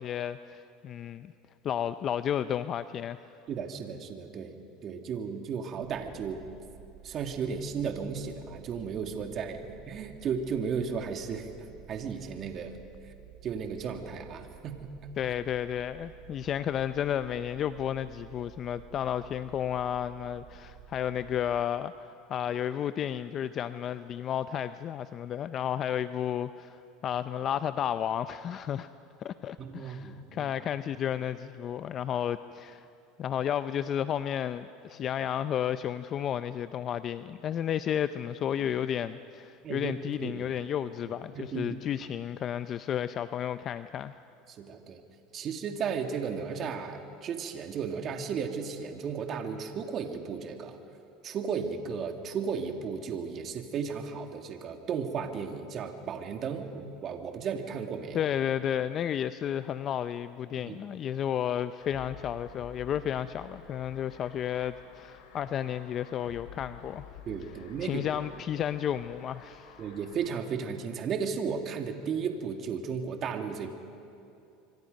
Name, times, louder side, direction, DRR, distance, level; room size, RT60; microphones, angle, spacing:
voice 1, 0.0-1.3 1.6-3.2 15.2-28.9 29.2-32.8 33.2-44.2 58.1-67.0 67.8-69.8, left 9 dB, 40° left, 12 dB, 0.6 m, -32 dB
voice 2, 3.5-6.4 7.0-11.5 11.9-12.8 13.4-14.9 29.6-30.5 39.6-39.9 40.2-40.5 41.1-41.8 44.5-45.0 45.3-50.8 51.2-58.2 60.7-60.8 67.3-68.0 69.8-73.7, right 6 dB, 40° right, 5 dB, 2.2 m, -34 dB
sound 1, 5.8-21.6, right 12 dB, 75° right, 2.2 m, -52 dB
sound 2, 61.8-70.4, left 7 dB, 80° left, 3.6 m, -50 dB
25.5 x 25.5 x 5.3 m, 2.7 s
supercardioid pair, 110°, 0 cm